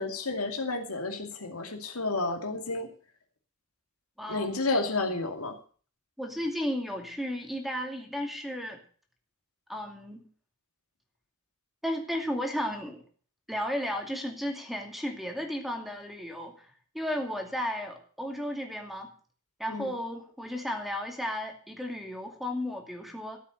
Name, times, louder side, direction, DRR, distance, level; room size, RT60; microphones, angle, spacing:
voice 1, 0.0-2.9 4.3-5.5 19.7-19.9, left 3 dB, 75° left, 5 dB, 2.4 m, -31 dB
voice 2, 4.2-4.5 6.2-8.8 9.7-10.3 11.8-13.0 13.5-19.1 19.6-23.4, equal, ahead, 3 dB, 2.5 m, -34 dB
14.0 x 8.3 x 7.8 m, 0.42 s
head